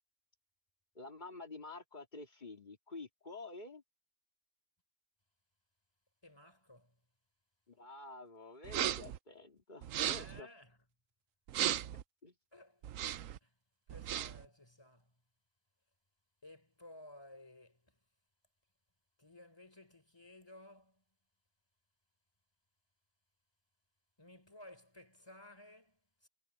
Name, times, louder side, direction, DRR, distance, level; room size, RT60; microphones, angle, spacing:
voice 1, 0.9-3.8 7.7-10.5 12.2-12.3, left 3 dB, 35° left, 3.0 m, -49 dB
voice 2, 6.2-7.0 10.0-10.8 12.5-12.9 13.4-13.6 13.9-15.2 16.4-18.0 19.2-21.0 24.2-26.3, left 1 dB, 20° left, 3.7 m, -57 dB
sound 1, 8.6-9.2 9.8-10.4 11.5-12.0 12.8-13.4 13.9-14.4, right 11 dB, 80° right, 1.1 m, -36 dB
omnidirectional pair, 1.4 m